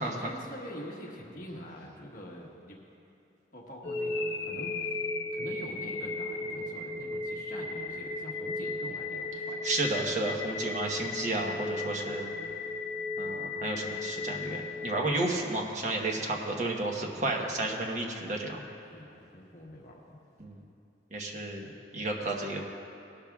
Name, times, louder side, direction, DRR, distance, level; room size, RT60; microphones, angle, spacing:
voice 1, 0.0-2.8 3.5-5.0 5.3-9.6 18.9-20.2, left 1 dB, 50° left, -2 dB, 1.4 m, -45 dB
sound 1, 3.8-15.9, left 3 dB, 80° left, 1.2 m, -35 dB
voice 2, 9.6-12.3 13.2-18.6 20.4-20.6 21.1-22.6, right 2 dB, 45° right, 1 dB, 1.2 m, -32 dB
18.0 x 12.0 x 2.4 m, 2.8 s
head